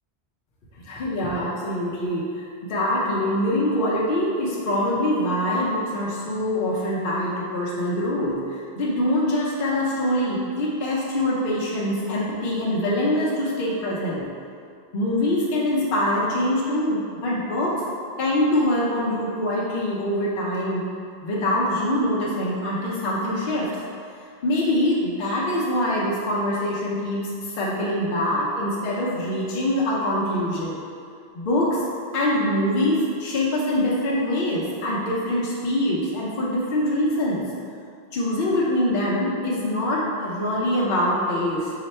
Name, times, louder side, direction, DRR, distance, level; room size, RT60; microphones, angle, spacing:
voice 1, 0.7-14.3 14.9-17.8 18.2-20.8 21.2-23.8 24.4-30.8 31.3-31.8 32.1-37.4 38.1-41.7, left 1 dB, 60° left, -6 dB, 0.7 m, -24 dB
4.0 x 2.2 x 4.1 m, 2.4 s
omnidirectional pair, 1.0 m